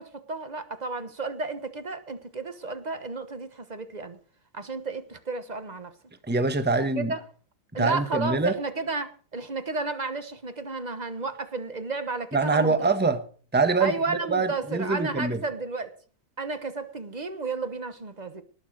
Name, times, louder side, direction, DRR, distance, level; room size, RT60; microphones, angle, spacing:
voice 1, 0.0-4.2 4.5-5.9 7.0-7.2 7.7-12.7 13.8-15.9 16.4-18.4, right 3 dB, 30° right, 1.0 m, -32 dB
voice 2, 6.3-7.1 7.7-8.5 12.3-13.2 13.5-15.4, right 3 dB, 5° right, 1.0 m, -24 dB
19.0 x 7.3 x 6.4 m
omnidirectional pair, 2.1 m